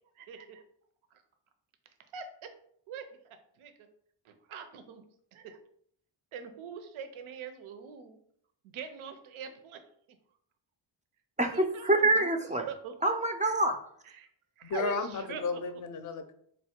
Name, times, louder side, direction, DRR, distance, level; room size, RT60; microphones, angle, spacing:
voice 1, 0.2-0.6 2.1-2.5 2.9-3.7 4.2-5.0 5.3-5.6 6.3-8.2 8.6-9.8 11.5-12.0 12.7-12.9 14.0-14.3 14.6-15.4, right 6 dB, 80° right, 8 dB, 0.6 m, -43 dB
voice 2, 11.4-12.7 13.0-13.8, right 2 dB, 20° right, 5 dB, 0.3 m, -26 dB
voice 3, 14.6-16.3, left 4 dB, 40° left, 9 dB, 0.5 m, -33 dB
3.9 x 2.1 x 4.2 m, 0.67 s
cardioid pair, 85°, 48 cm